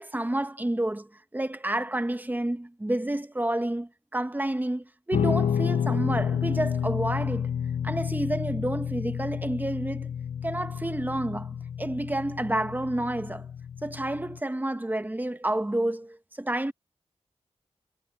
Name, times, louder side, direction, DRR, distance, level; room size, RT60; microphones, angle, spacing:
voice 1, 0.0-7.5 7.8-10.1 10.4-13.5 13.8-16.7, right 1 dB, 15° right, 1.3 m, -30 dB
Guitar, 5.1-14.4, left 8 dB, 80° left, 0.5 m, -30 dB
cardioid pair, 65°, 12 cm